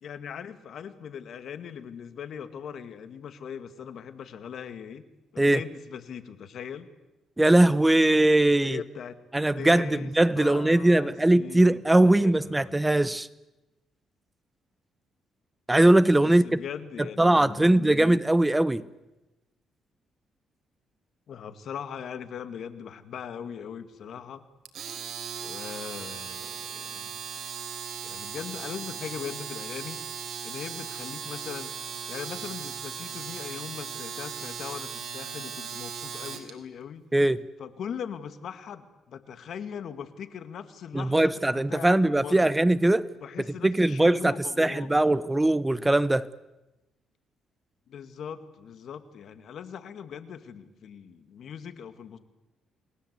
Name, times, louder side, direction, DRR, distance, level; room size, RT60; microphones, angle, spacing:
voice 1, 0.0-5.1 5.3-6.9 8.6-9.2 9.5-12.8 16.2-18.2 21.3-24.4 25.4-27.1 28.0-30.1 30.4-31.8 32.1-37.1 37.6-42.5 43.2-45.2 47.9-52.2, left 8 dB, 65° left, 2.1 m, -40 dB
voice 2, 7.4-8.8 9.3-13.3 15.7-16.6 17.0-18.8 37.1-37.4 40.9-43.1 43.6-46.3, right 1 dB, 10° right, 0.8 m, -21 dB
Domestic sounds home sounds, 24.6-36.5, right 7 dB, 60° right, 3.8 m, -37 dB
29.0 x 20.5 x 8.3 m
cardioid pair, 90°, 0 cm